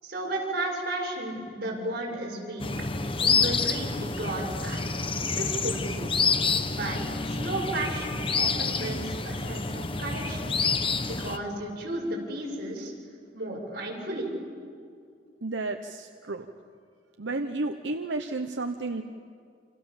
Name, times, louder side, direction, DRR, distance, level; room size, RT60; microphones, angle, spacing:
voice 1, 0.0-2.7 3.2-5.0 5.3-6.1 6.7-7.0 7.3-10.5 11.0-12.9 13.3-14.3, right 1 dB, 55° right, -2 dB, 7.4 m, -33 dB
sound 1, 2.6-11.4, left 4 dB, 30° left, 1.1 m, -28 dB
voice 2, 15.4-16.5 17.2-19.0, right 2 dB, 90° right, 5 dB, 1.1 m, -32 dB
29.0 x 28.0 x 7.4 m, 2.3 s
head